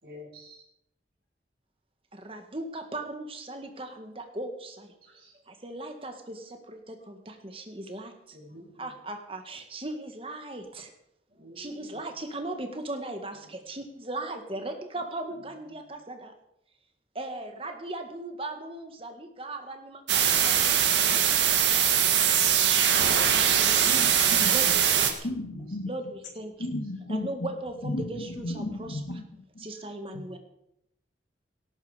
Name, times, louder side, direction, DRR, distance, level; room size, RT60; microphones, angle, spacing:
voice 1, 0.0-0.6 5.1-5.3 8.3-8.9 11.4-12.0 30.3-30.4, left 1 dB, 55° right, -3 dB, 7.7 m, -48 dB
voice 2, 2.1-4.9 5.5-8.4 8.8-10.9 11.6-16.3 17.2-21.2 23.1-23.9 24.5-24.7 25.0-25.1 25.9-26.1 26.4-26.5 27.1-29.0 29.6-30.4, right 2 dB, 30° right, 5 dB, 1.9 m, -38 dB
sound 1, 20.1-25.1, right 9 dB, 80° right, 1.8 m, -22 dB
voice 3, 23.9-24.7 25.1-25.9 26.6-27.5 27.8-29.2 29.5-30.4, left 1 dB, 80° left, 2 dB, 1.9 m, -35 dB
18.0 x 13.0 x 5.1 m, 0.80 s
head